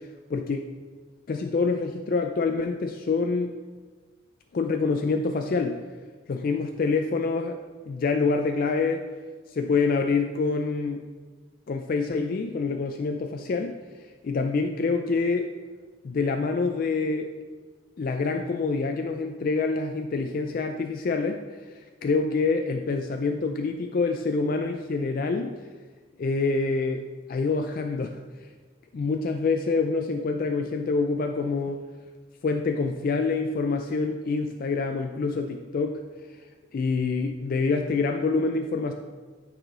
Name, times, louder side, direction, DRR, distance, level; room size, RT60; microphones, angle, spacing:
voice 1, 0.3-0.7 1.3-3.6 4.5-5.8 6.3-7.6 7.9-9.1 9.5-11.1 11.7-13.8 14.2-15.5 16.0-17.3 18.0-21.4 21.7-25.5 26.2-27.0 27.3-28.2 28.9-31.8 32.4-36.0 36.7-38.9, left 4 dB, 45° left, 4 dB, 0.3 m, -26 dB
9.0 x 4.8 x 3.7 m, 1.4 s
head